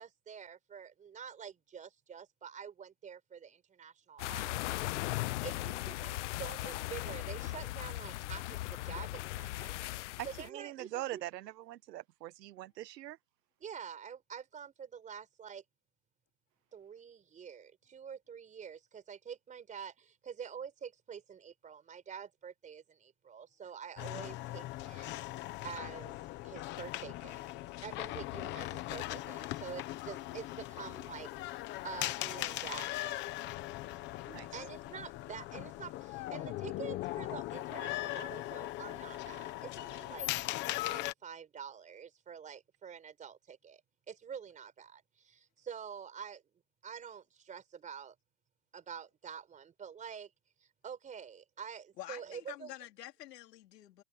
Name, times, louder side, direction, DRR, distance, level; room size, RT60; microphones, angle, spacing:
voice 1, 0.0-9.8 10.2-11.2 13.6-15.6 16.7-25.2 25.6-26.2 26.4-27.4 27.8-33.5 34.5-40.3 40.8-43.8 44.1-46.4 46.8-48.1 48.7-50.3 50.6-52.7, right 7 dB, 15° right, 4.9 m, -47 dB
sound 1, 4.2-10.5, left 17 dB, 50° left, 0.6 m, -38 dB
voice 2, 10.4-13.2 34.3-34.6, right 14 dB, 90° right, 1.2 m, -43 dB
sound 2, 24.0-41.1, left 17 dB, 25° left, 0.9 m, -39 dB
voice 3, 52.0-54.0, left 13 dB, 80° left, 4.1 m, -48 dB
supercardioid pair, 160°, 47 cm